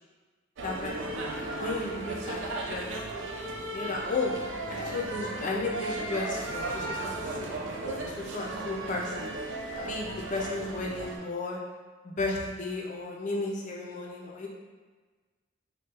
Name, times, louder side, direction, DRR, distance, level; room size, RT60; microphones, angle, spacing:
voice 1, 0.6-2.4 2.7-2.9 3.7-4.3 4.7-9.3 9.8-11.6 12.0-14.5, left 3 dB, 40° left, -1 dB, 0.5 m, -34 dB
sound 1, 0.6-11.2, right 2 dB, 75° right, 0.4 m, -36 dB
3.2 x 2.3 x 3.3 m, 1.4 s
head